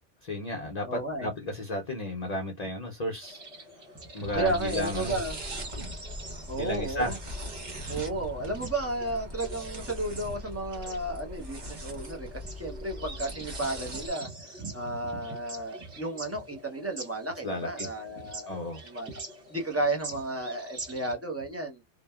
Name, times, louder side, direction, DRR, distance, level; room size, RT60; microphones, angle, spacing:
voice 1, 0.2-3.4 4.1-5.2 6.6-7.2 17.4-17.9 18.5-18.8, left 1 dB, 45° left, 0.6 m, -33 dB
voice 2, 0.9-1.3 4.2-5.4 6.5-7.2 7.8-14.3 14.6-19.1 19.5-21.8, right 2 dB, 20° right, 0.5 m, -33 dB
sound 1, 3.2-21.2, right 2 dB, 65° right, 1.4 m, -45 dB
sound 2, 4.3-14.1, equal, 45° right, 1.0 m, -40 dB
2.9 x 2.1 x 2.3 m
omnidirectional pair, 1.2 m